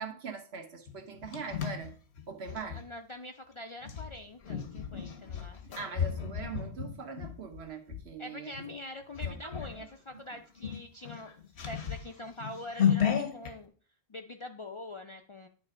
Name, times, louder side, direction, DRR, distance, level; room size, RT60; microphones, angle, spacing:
voice 1, 0.0-1.9 2.3-2.8 5.7-8.5 9.2-9.9 10.3-10.4, right 5 dB, 75° right, 1.3 m, -42 dB
sound 1, 0.9-2.8 3.8-8.0 8.5-8.8 9.1-9.8 10.1-10.2 10.6-13.5, left 8 dB, 85° left, 1.2 m, -33 dB
voice 2, 2.5-5.8 8.2-11.3 11.7-13.7 14.1-15.5, left 1 dB, 45° left, 0.4 m, -44 dB
9.6 x 3.3 x 4.9 m
omnidirectional pair, 1.1 m